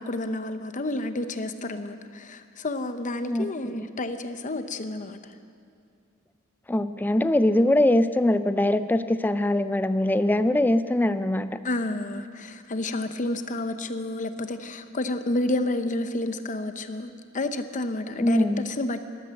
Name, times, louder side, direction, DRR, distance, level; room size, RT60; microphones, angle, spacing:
voice 1, 0.0-5.2 11.6-19.0, left 2 dB, 35° left, 9 dB, 0.7 m, -30 dB
voice 2, 6.7-11.6 18.2-18.7, left 1 dB, 10° left, 12 dB, 0.3 m, -22 dB
13.5 x 12.5 x 7.5 m, 2.3 s
head